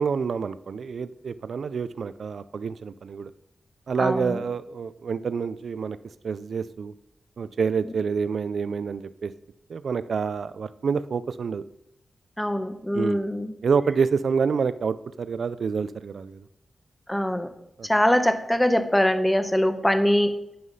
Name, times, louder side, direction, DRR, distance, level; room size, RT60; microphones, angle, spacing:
voice 1, 0.0-3.3 3.9-6.0 6.2-6.9 7.4-9.3 9.7-11.6 12.9-13.2 13.6-16.4 17.8-17.9, right 5 dB, 75° right, 15 dB, 0.3 m, -27 dB
voice 2, 4.0-4.4 12.4-13.5 17.1-17.5 17.8-20.3, equal, 10° left, 9 dB, 0.8 m, -23 dB
9.5 x 5.6 x 5.5 m, 0.82 s
wide cardioid pair, 90°, 0 cm